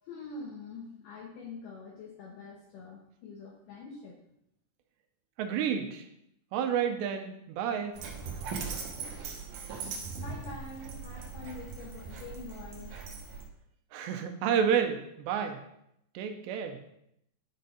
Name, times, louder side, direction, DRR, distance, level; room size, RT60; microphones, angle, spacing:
voice 1, 0.0-4.2 10.2-13.4, left 4 dB, 75° left, -1 dB, 2.0 m, -45 dB
voice 2, 5.4-6.0 6.5-7.9 13.9-15.6 16.1-16.8, right 7 dB, 85° right, 6 dB, 2.9 m, -30 dB
Dog, 7.9-13.5, right 5 dB, 65° right, 2.2 m, -40 dB
11.5 x 4.3 x 5.1 m, 0.77 s
omnidirectional pair, 5.1 m